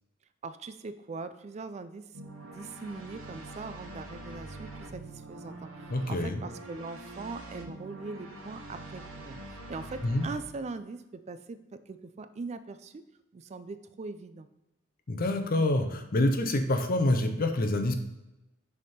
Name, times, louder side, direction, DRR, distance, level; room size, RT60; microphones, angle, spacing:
voice 1, 0.4-2.1 2.4-13.0 13.3-14.5, right 3 dB, 35° right, 11 dB, 0.3 m, -41 dB
sound 1, 2.1-10.4, right 2 dB, 80° right, 0.9 m, -44 dB
voice 2, 5.9-6.4 10.0-10.2 15.1-18.0, left 1 dB, 45° left, 7 dB, 0.6 m, -27 dB
6.3 x 3.6 x 4.2 m, 0.95 s
head